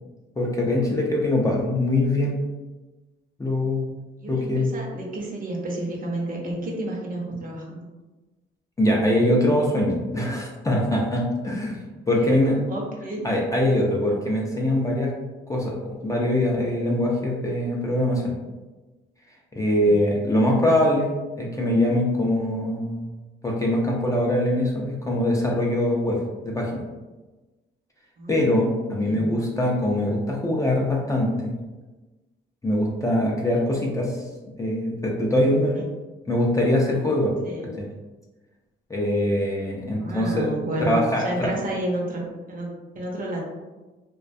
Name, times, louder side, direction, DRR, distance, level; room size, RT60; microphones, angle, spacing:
voice 1, 0.4-2.4 3.4-3.9 4.3-4.7 8.8-11.8 12.1-12.6 13.2-15.1 15.5-18.3 19.6-23.0 23.4-26.2 26.4-26.8 28.3-31.5 32.6-34.2 34.6-35.8 36.3-37.3 37.8-37.9 38.9-40.5 40.8-41.5, left 1 dB, 15° left, -2 dB, 0.4 m, -23 dB
voice 2, 4.2-7.9 12.1-13.2 19.8-20.0 28.2-28.4 29.0-29.3 35.7-35.8 37.4-37.7 40.0-41.0 41.2-43.4, right 1 dB, 45° right, -2 dB, 0.7 m, -31 dB
2.3 x 2.2 x 2.5 m, 1.2 s
cardioid pair, 90°, 20 cm